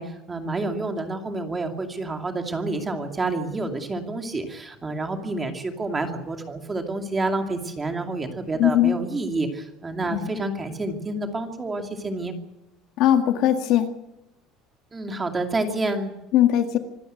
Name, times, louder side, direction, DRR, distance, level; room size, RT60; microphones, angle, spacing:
voice 1, 0.0-12.3 14.9-16.1, right 2 dB, 15° right, 4 dB, 2.5 m, -29 dB
voice 2, 8.6-8.9 10.1-10.3 13.0-13.9 16.3-16.8, left 11 dB, 50° left, 7 dB, 1.8 m, -19 dB
26.0 x 13.0 x 9.1 m, 0.92 s
cardioid pair, 180°, 0 cm